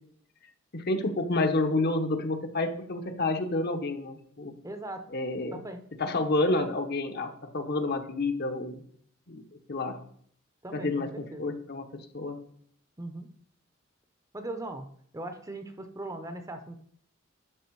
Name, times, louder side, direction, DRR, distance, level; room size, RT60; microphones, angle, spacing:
voice 1, 0.7-4.5 5.1-5.6 6.0-8.8 9.3-9.4 9.7-10.0 10.7-11.8 12.1-12.4, left 2 dB, 50° left, 7 dB, 1.0 m, -29 dB
voice 2, 4.6-5.1 5.5-6.3 10.6-11.5 13.0-13.3 14.3-16.8, right 2 dB, 15° right, 7 dB, 0.7 m, -40 dB
11.0 x 6.0 x 4.7 m, 0.64 s
head